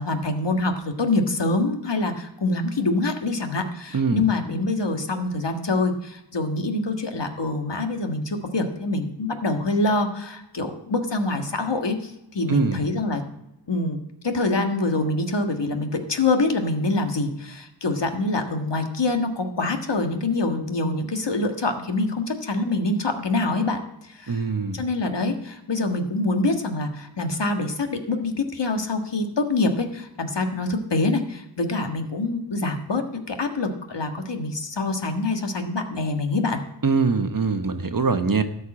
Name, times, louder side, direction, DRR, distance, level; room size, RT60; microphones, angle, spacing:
voice 1, 0.0-13.2 13.7-14.0 14.2-23.8 24.1-24.5 24.7-36.6, left 2 dB, 60° left, 5 dB, 1.6 m, -25 dB
voice 2, 3.9-4.2 12.5-12.8 24.3-24.8 36.8-38.4, right 4 dB, 45° right, 9 dB, 1.0 m, -22 dB
13.0 x 5.6 x 8.5 m, 0.91 s
wide cardioid pair, 45°, 47 cm